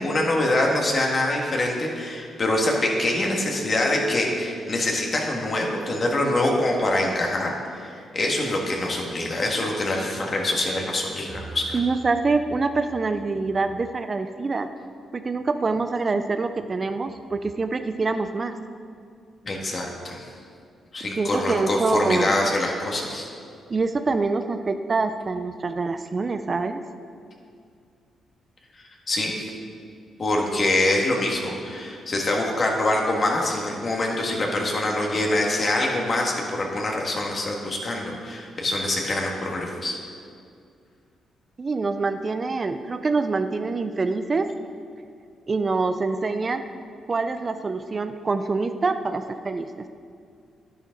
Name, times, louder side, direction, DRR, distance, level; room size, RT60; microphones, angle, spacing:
voice 1, 0.0-11.8 19.4-20.3 20.9-23.3 28.7-29.5 30.2-40.0, left 1 dB, 45° left, 0 dB, 2.0 m, -25 dB
voice 2, 11.7-14.7 15.1-18.6 21.0-22.3 23.7-26.8 30.5-30.6 41.6-44.5 45.5-46.6 47.1-49.9, right 3 dB, 40° right, 9 dB, 0.5 m, -25 dB
10.0 x 10.0 x 4.0 m, 2.3 s
cardioid pair, 70°, 0 cm